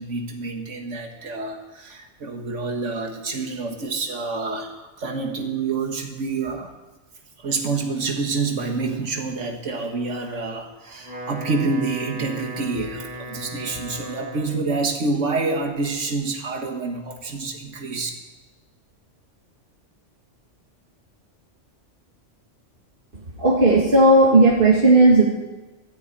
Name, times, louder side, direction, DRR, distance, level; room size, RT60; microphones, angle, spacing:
voice 1, 0.0-6.7 7.4-18.1, right 3 dB, 75° right, 3 dB, 2.0 m, -27 dB
Wind instrument woodwind instrument, 10.9-14.8, equal, 65° left, 4.6 m, -37 dB
voice 2, 23.4-25.2, right 2 dB, 45° right, -3 dB, 2.1 m, -14 dB
13.0 x 10.0 x 8.9 m, 1.2 s
omnidirectional pair, 1.3 m